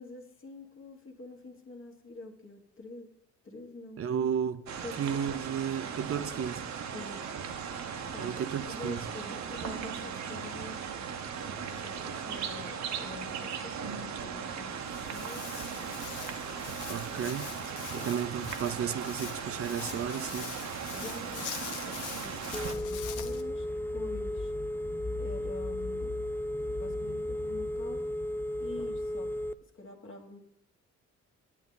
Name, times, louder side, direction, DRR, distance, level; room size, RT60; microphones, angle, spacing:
voice 1, 0.0-3.1 3.4-4.0 4.8-5.2 6.9-7.3 8.1-8.3 8.7-10.9 11.4-15.4 17.9-18.1 20.9-23.7 23.9-24.5 25.2-26.2 26.7-28.1 28.6-29.3 29.6-30.4, left 3 dB, 45° left, 1.6 m, -46 dB
voice 2, 4.0-4.7 5.0-6.7 8.2-9.1 16.9-17.5 17.9-20.5, right 8 dB, 50° right, 0.6 m, -33 dB
sound 1, 4.7-22.7, right 7 dB, 65° right, 1.0 m, -38 dB
Walk footsteps, 14.7-23.4, left 8 dB, 85° left, 0.9 m, -43 dB
Telephone, 22.5-29.5, left 1 dB, 10° left, 0.3 m, -34 dB
8.4 x 8.2 x 3.9 m
cardioid pair, 90°, 30 cm